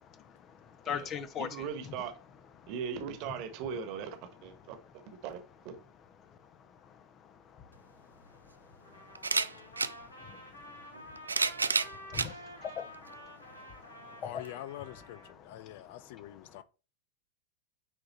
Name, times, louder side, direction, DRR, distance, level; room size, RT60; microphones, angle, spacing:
voice 1, 0.7-1.5 7.5-7.6 9.5-9.6 10.2-10.4 10.8-11.3 12.1-14.4 15.3-16.4, left 8 dB, 30° left, 0.9 m, -42 dB
voice 2, 1.4-2.1 2.7-4.8 5.1-5.8, right 7 dB, 45° right, 1.4 m, -39 dB
sound 1, 7.7-7.8 9.1-9.9 10.9-12.3 13.1-13.2 14.4-14.5, right 4 dB, 80° right, 0.4 m, -30 dB
Trumpet, 8.8-15.3, equal, 75° left, 2.1 m, -50 dB
voice 3, 14.2-16.6, left 13 dB, 50° left, 0.5 m, -45 dB
9.4 x 3.8 x 4.3 m
figure-of-eight pair, 90°, 0 cm